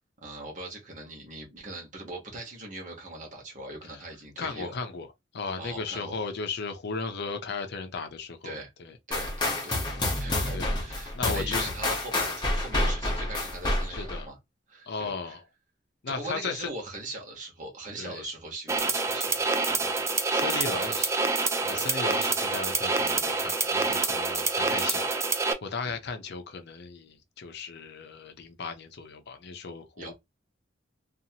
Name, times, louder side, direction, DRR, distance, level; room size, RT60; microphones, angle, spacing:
voice 1, 0.2-4.7 5.6-6.2 8.4-8.7 9.1-14.4 14.7-15.4 16.1-19.8 20.5-21.0 21.7-21.9 25.8-26.0 30.0-30.1, right 2 dB, 40° right, 1.1 m, -40 dB
voice 2, 4.4-9.0 10.5-10.8 11.1-11.7 13.9-14.3 14.9-15.4 16.0-16.7 18.0-18.3 19.7-19.9 20.3-21.1 21.6-30.1, left 4 dB, 60° left, 0.5 m, -36 dB
sound 1, 9.1-14.2, left 2 dB, 25° left, 0.8 m, -28 dB
sound 2, 18.7-25.5, right 3 dB, 15° right, 0.3 m, -27 dB
2.7 x 2.4 x 2.8 m
head